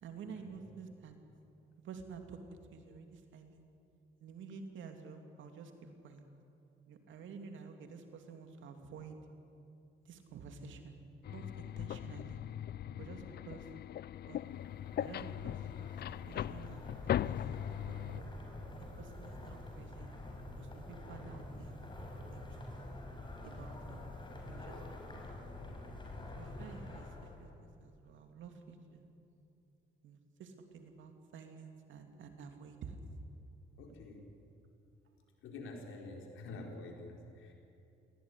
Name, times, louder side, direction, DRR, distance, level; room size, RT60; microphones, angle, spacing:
voice 1, 0.0-1.2 1.8-3.7 4.2-6.2 6.9-9.2 10.0-11.0 11.3-12.4 13.0-13.7 14.3-14.5 14.9-15.9 16.3-18.3 19.0-20.1 20.6-23.0 23.4-24.0 24.5-24.8 25.2-25.4 26.1-29.1 30.0-33.0, right 5 dB, 75° right, 5 dB, 2.8 m, -51 dB
sound 1, 11.2-18.2, left 11 dB, 55° left, 0.4 m, -39 dB
sound 2, 14.1-27.5, left 2 dB, 25° left, 5.5 m, -47 dB
voice 2, 33.8-34.2 35.4-37.5, left 2 dB, 85° left, 1 dB, 4.5 m, -47 dB
22.5 x 17.5 x 9.9 m, 2.8 s
cardioid pair, 90°, 20 cm